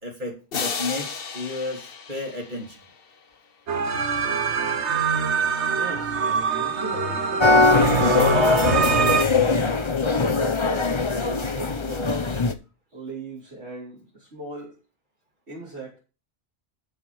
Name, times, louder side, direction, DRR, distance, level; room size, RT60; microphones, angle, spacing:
voice 1, 0.0-2.8, left 2 dB, 45° right, 0 dB, 3.4 m, -32 dB
sound 1, 0.5-3.4, left 5 dB, 60° left, 1.2 m, -33 dB
sound 2, 3.7-9.2, right 6 dB, 90° right, 1.5 m, -24 dB
voice 2, 5.6-12.4 12.9-14.8 15.5-16.0, right 1 dB, 75° right, -7 dB, 4.8 m, -39 dB
sound 3, 7.4-12.5, left 3 dB, 30° left, 0.9 m, -21 dB
13.5 x 5.2 x 6.3 m, 0.33 s
omnidirectional pair, 1.1 m